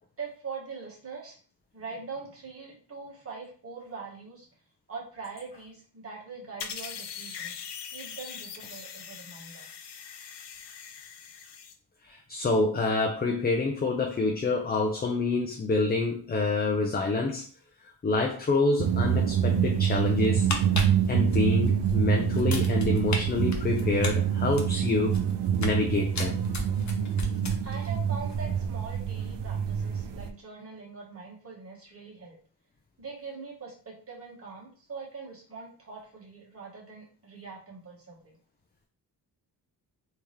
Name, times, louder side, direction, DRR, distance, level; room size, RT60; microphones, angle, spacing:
voice 1, 0.2-1.4 1.7-4.5 4.9-9.7 27.6-32.4 33.0-38.4, right 4 dB, 35° right, -3 dB, 1.4 m, -42 dB
sound 1, 6.6-11.7, left 7 dB, 75° left, 0.6 m, -41 dB
voice 2, 12.0-17.4 18.0-20.5 21.1-25.2 25.6-26.4, left 3 dB, 25° left, 1 dB, 0.4 m, -27 dB
sound 2, 18.8-30.3, right 8 dB, 80° right, 0.5 m, -26 dB
sound 3, 20.3-21.9 22.3-23.2 23.5-25.8 26.1-27.9 28.2-28.4, left 3 dB, 45° left, 0.7 m, -35 dB
3.5 x 2.8 x 3.2 m, 0.43 s
wide cardioid pair, 135°, 41 cm